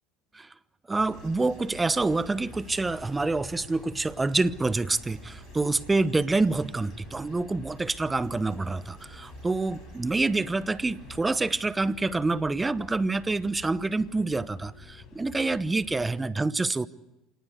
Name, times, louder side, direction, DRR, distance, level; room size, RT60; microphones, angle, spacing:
sound 1, 0.9-16.2, left 6 dB, 45° left, 6.4 m, -49 dB
voice 1, 0.9-16.9, right 3 dB, 15° right, 0.9 m, -27 dB
sound 2, 1.1-11.3, right 8 dB, 55° right, 3.5 m, -50 dB
27.5 x 18.5 x 8.0 m
supercardioid pair, 95°, 0 cm